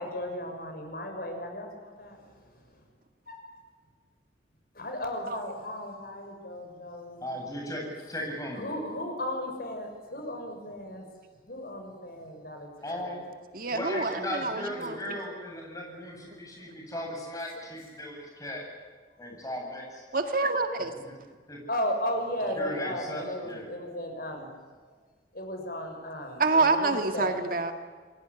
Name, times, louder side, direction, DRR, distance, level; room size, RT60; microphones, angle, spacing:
voice 1, 0.0-2.8 3.3-3.5 4.7-7.3 8.5-11.1 11.4-13.1 21.7-24.5 25.3-27.4, left 1 dB, 55° left, 4 dB, 6.3 m, -35 dB
voice 2, 7.2-8.8 12.8-13.2 13.7-18.6 19.2-20.0 21.0-21.1 21.5-21.6 22.6-23.7, left 1 dB, 20° left, 0 dB, 8.0 m, -37 dB
voice 3, 13.5-15.2 16.6-16.7 20.1-20.9 26.4-27.7, right 3 dB, 50° right, 6 dB, 2.0 m, -27 dB
27.5 x 21.5 x 9.9 m, 1.5 s
head